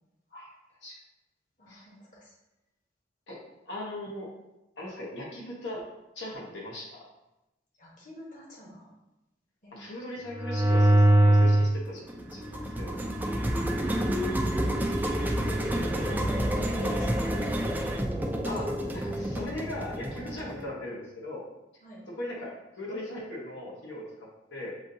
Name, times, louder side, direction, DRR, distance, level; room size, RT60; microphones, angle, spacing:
voice 1, 1.6-2.3 7.8-8.9 9.6-9.8 14.5-18.0 21.8-22.0, left 1 dB, 45° left, -5 dB, 1.1 m, -47 dB
voice 2, 3.6-4.3 4.8-5.9 6.1-7.1 9.7-13.0 15.9-16.0 18.4-21.4 22.1-24.7, left 1 dB, 80° left, -3 dB, 1.1 m, -39 dB
sound 1, 10.3-11.7 12.1-20.6, right 1 dB, 10° right, 0.3 m, -26 dB
6.9 x 2.7 x 2.7 m, 0.94 s
head